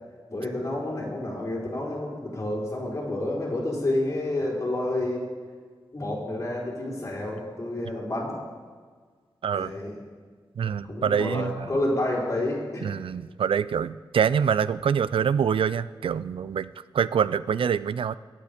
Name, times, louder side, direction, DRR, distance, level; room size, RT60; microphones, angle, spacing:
voice 1, 0.3-5.3 5.9-8.4 9.5-10.0 10.9-12.9, left 1 dB, 30° left, -5 dB, 4.3 m, -29 dB
voice 2, 10.6-11.6 12.8-18.1, right 7 dB, 85° right, 17 dB, 0.4 m, -25 dB
22.5 x 8.6 x 5.2 m, 1.6 s
wide cardioid pair, 140°, 9 cm